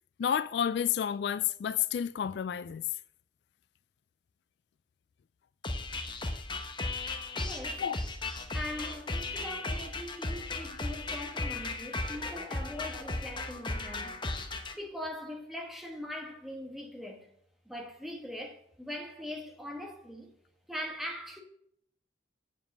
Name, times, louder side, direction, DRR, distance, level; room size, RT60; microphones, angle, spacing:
voice 1, 0.2-2.8 7.8-8.0, left 9 dB, 65° left, 0.3 m, -30 dB
sound 1, 5.6-14.7, left 2 dB, 25° left, 0.9 m, -36 dB
voice 2, 7.4-7.8 8.5-14.2 14.7-17.3 17.6-20.3 20.7-21.4, left 1 dB, ahead, 1.4 m, -41 dB
7.3 x 7.2 x 7.3 m
head